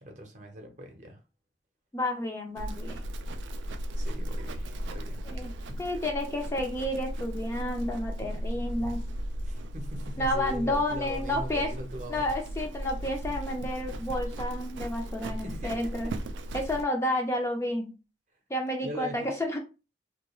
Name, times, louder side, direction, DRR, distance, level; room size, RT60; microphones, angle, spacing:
voice 1, 0.0-1.2 3.9-5.2 5.7-5.8 9.4-12.2 15.4-16.1 18.8-19.3, equal, 45° right, 0.7 m, -41 dB
voice 2, 1.9-3.0 5.3-5.5 5.8-9.0 10.2-11.7 12.1-16.1 16.5-17.9 18.5-19.6, left 1 dB, 15° left, 0.4 m, -31 dB
Livestock farm animals working animals, 2.6-16.8, right 1 dB, 85° right, 0.3 m, -36 dB
2.3 x 2.2 x 3.0 m
head